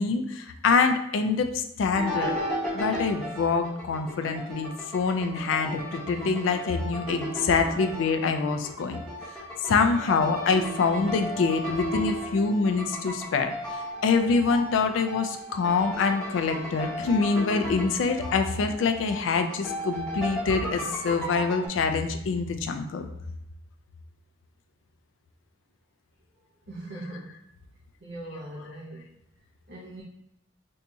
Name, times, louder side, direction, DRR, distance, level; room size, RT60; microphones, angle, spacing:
voice 1, 0.0-2.3 2.7-9.0 9.6-13.5 14.0-23.1, left 4 dB, 70° left, 7 dB, 0.3 m, -25 dB
sound 1, 1.9-21.7, equal, 5° left, 0.8 m, -35 dB
voice 2, 26.7-27.3 28.0-29.1 29.7-30.0, right 1 dB, 60° right, -5 dB, 0.6 m, -40 dB
2.7 x 2.3 x 3.8 m, 0.80 s
head